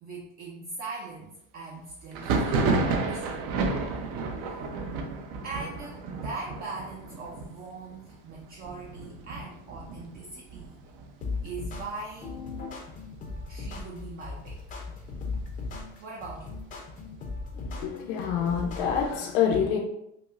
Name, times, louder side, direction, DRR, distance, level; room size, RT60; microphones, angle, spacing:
voice 1, 0.0-3.4 4.4-4.6 5.4-10.8 11.4-12.4 13.5-14.8 16.0-16.6, right 3 dB, 30° right, -2 dB, 0.4 m, -41 dB
Thunder, 2.1-11.6 11.9-12.6 12.8-13.8 14.2-15.9, right 3 dB, 70° right, 0.7 m, -32 dB
sound 1, 11.2-19.2, left 3 dB, 25° left, 0.5 m, -37 dB
voice 2, 17.5-19.8, left 7 dB, 75° left, 2 dB, 0.6 m, -27 dB
5.3 x 2.0 x 2.4 m, 0.80 s
cardioid pair, 160°, 31 cm